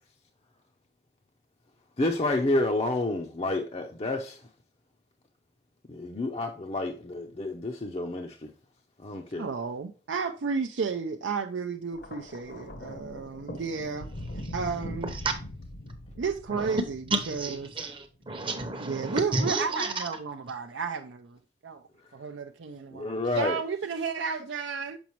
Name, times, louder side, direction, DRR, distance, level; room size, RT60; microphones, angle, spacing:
voice 1, 2.0-4.4 5.9-8.5 9.0-9.5 22.9-23.6, left 2 dB, 35° left, 0.5 m, -29 dB
voice 2, 9.3-14.1 14.3-15.1 16.2-17.7 18.8-21.8 22.1-25.0, right 5 dB, 85° right, 0.5 m, -33 dB
Thunder, 11.9-18.3 19.3-19.5, left 1 dB, 60° left, 0.9 m, -41 dB
voice 3, 17.1-20.0, right 2 dB, 30° right, 0.8 m, -30 dB
7.0 x 5.0 x 3.0 m
head